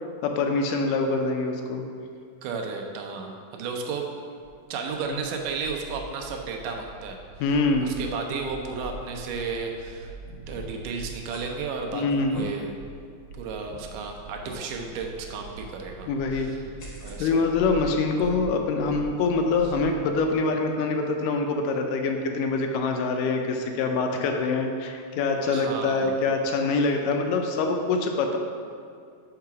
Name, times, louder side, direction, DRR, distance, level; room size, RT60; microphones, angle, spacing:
voice 1, 0.2-1.8 5.1-5.2 7.4-7.9 11.9-12.4 16.1-16.5 17.2-28.4, left 3 dB, 80° left, 4 dB, 2.2 m, -25 dB
voice 2, 2.4-4.2 4.7-7.2 7.8-12.0 12.3-12.7 13.4-16.6 17.0-17.5 25.4-26.2, right 5 dB, 80° right, 2 dB, 2.2 m, -33 dB
sound 1, 4.4-20.4, right 2 dB, 45° right, 2.1 m, -44 dB
sound 2, 10.5-10.8 11.2-11.4 12.1-12.4 13.0-13.1 13.6-13.8 14.4-14.6 16.8-17.3, left 5 dB, 65° left, 1.1 m, -42 dB
6.7 x 4.7 x 5.9 m, 2.2 s
omnidirectional pair, 3.9 m